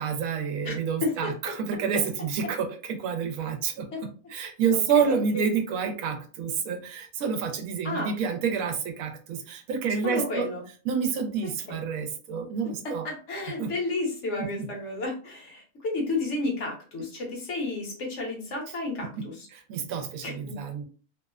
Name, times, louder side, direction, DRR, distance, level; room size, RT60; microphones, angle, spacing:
voice 1, 0.0-10.5 10.9-13.1 13.6-13.7 14.4-14.7 19.2-19.3 19.7-20.9, right 6 dB, 85° right, 5 dB, 1.0 m, -28 dB
voice 2, 10.0-10.6 11.4-11.8 12.8-19.5 20.2-20.5, left 2 dB, 60° left, 0 dB, 1.1 m, -32 dB
2.8 x 2.0 x 2.3 m, 0.39 s
omnidirectional pair, 1.4 m